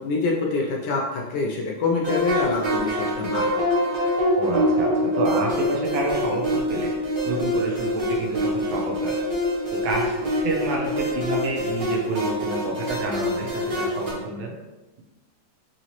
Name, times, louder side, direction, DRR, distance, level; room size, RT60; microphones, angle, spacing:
voice 1, 0.0-3.5, left 3 dB, 75° left, -1 dB, 1.0 m, -25 dB
sound 1, 2.0-14.1, equal, 60° right, 0.5 m, -25 dB
voice 2, 4.4-9.2 9.7-14.5, right 2 dB, 80° right, -1 dB, 1.6 m, -29 dB
3.9 x 3.1 x 2.9 m, 1.1 s
omnidirectional pair, 2.2 m